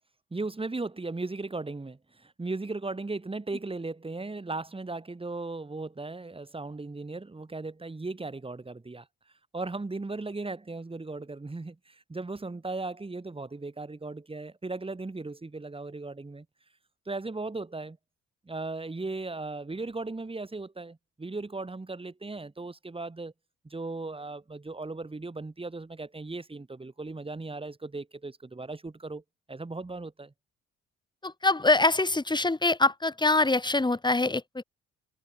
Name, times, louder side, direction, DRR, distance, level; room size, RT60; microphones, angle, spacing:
voice 1, 0.3-9.1 9.5-16.4 17.1-18.0 18.4-23.3 23.6-29.2 29.5-30.3, right 3 dB, 20° right, 3.1 m, -37 dB
voice 2, 31.2-34.6, left 2 dB, 15° left, 2.6 m, -24 dB
cardioid pair, 90°, 30 cm